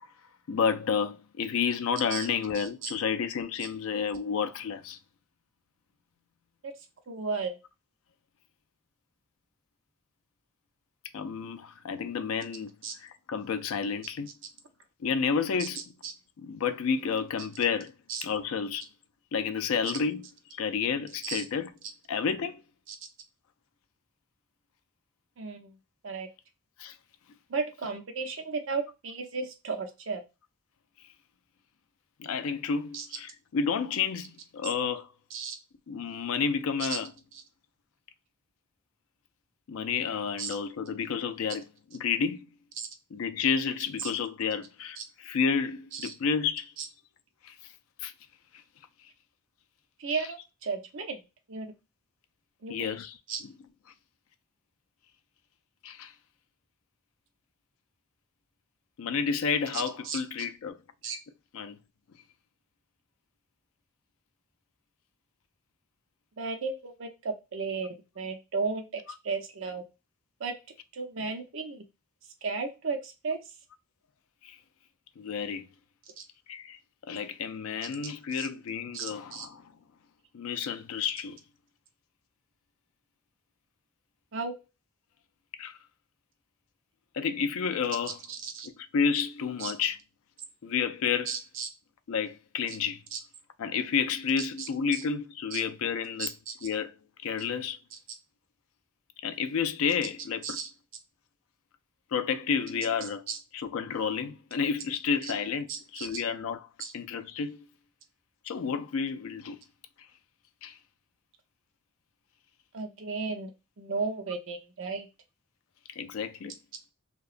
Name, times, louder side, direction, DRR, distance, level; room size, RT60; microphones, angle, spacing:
voice 1, 0.5-5.0 11.1-14.3 15.0-15.8 16.4-17.9 18.2-18.9 19.3-20.3 20.6-21.7 22.1-22.6 26.8-27.0 32.2-35.1 35.9-37.1 39.7-41.7 41.9-42.5 43.1-46.7 47.4-47.5 48.0-48.1 50.1-50.2 52.7-53.1 53.4-53.5 55.8-56.1 59.0-60.8 61.5-61.8 74.4-74.6 75.2-75.7 76.5-76.8 77.1-79.7 80.3-81.4 85.6-85.8 87.1-88.2 88.9-90.0 90.6-91.3 92.1-93.0 93.6-96.3 96.6-96.9 97.2-97.8 99.2-100.6 102.1-103.2 103.5-106.7 106.9-107.6 108.5-109.6 110.6-110.8 116.0-116.6, left 6 dB, 75° left, 0.4 m, -30 dB
voice 2, 2.5-2.9 6.6-6.7 7.1-7.6 12.8-12.9 15.6-15.7 16.0-16.1 18.1-18.2 21.2-21.4 22.9-23.0 25.4-25.8 26.0-26.3 27.5-30.2 32.9-33.1 35.3-35.6 36.8-37.0 40.4-40.6 42.8-42.9 44.0-44.1 45.0-45.1 45.9-46.1 46.8-46.9 50.0-51.2 51.5-51.7 52.6-53.0 53.3-53.4 59.7-60.2 61.0-61.2 66.4-69.8 70.4-70.5 70.9-71.8 72.4-73.4 76.2-76.3 78.3-78.5 78.9-79.5 84.3-84.6 88.3-88.7 89.6-89.7 91.3-91.7 92.7-92.8 93.1-93.2 94.6-95.0 95.5-95.6 96.2-96.7 97.9-98.0 100.4-100.7 103.3-103.4 105.2-105.3 105.7-106.2 106.8-106.9 112.7-113.5 113.8-115.1, right 4 dB, 65° right, 0.6 m, -34 dB
2.8 x 2.2 x 2.4 m
head